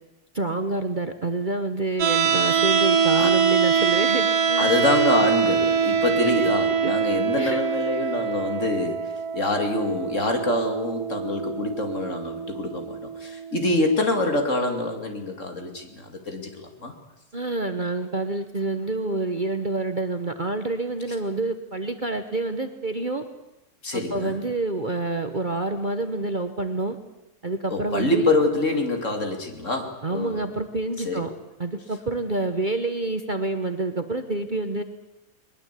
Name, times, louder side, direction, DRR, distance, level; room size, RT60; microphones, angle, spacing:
voice 1, 0.3-4.7 6.4-6.5 6.8-6.9 7.4-7.6 17.3-23.2 24.1-27.0 27.4-28.3 30.0-31.3 31.6-34.8, right 2 dB, 35° right, 8 dB, 1.2 m, -28 dB
sound 1, 2.0-14.0, right 6 dB, 70° right, 2.1 m, -24 dB
voice 2, 4.6-16.9 23.8-24.4 27.7-30.4 31.0-31.2, left 2 dB, 50° left, 5 dB, 3.0 m, -26 dB
21.5 x 21.0 x 8.4 m, 0.94 s
omnidirectional pair, 1.7 m